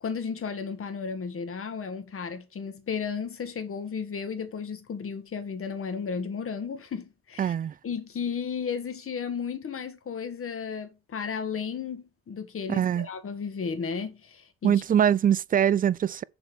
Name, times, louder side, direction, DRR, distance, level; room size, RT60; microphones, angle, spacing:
voice 1, 0.0-7.5 7.8-14.8, left 6 dB, 45° left, 1.7 m, -34 dB
voice 2, 7.4-7.7 12.7-13.1 14.6-16.2, right 9 dB, 30° right, 0.3 m, -23 dB
7.0 x 4.3 x 6.0 m
cardioid pair, 90°, 30 cm